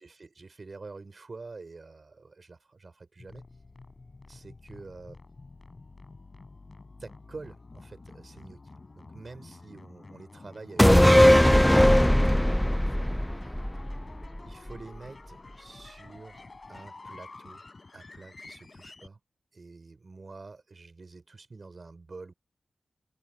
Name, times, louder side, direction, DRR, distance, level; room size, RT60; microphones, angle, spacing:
voice 1, 0.0-3.4 4.3-5.2 7.0-8.7 8.9-13.5 14.4-19.2 19.5-22.3, right 3 dB, 50° right, 4.8 m, -47 dB
sound 1, 3.2-19.1, left 3 dB, 40° left, 7.8 m, -49 dB
sound 2, 10.8-14.4 14.7-14.8, equal, 5° left, 0.5 m, -19 dB
wide cardioid pair, 90°, 0 cm